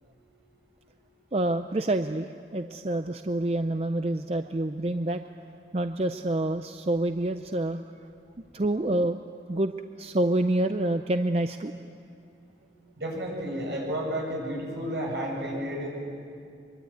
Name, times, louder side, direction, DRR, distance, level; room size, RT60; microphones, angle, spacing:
voice 1, 1.3-5.2 5.7-7.8 8.5-9.2 9.5-11.7, right 1 dB, 35° right, 8 dB, 0.5 m, -27 dB
voice 2, 13.0-15.9, equal, 70° right, -1 dB, 8.0 m, -31 dB
24.0 x 23.0 x 9.4 m, 2.5 s
head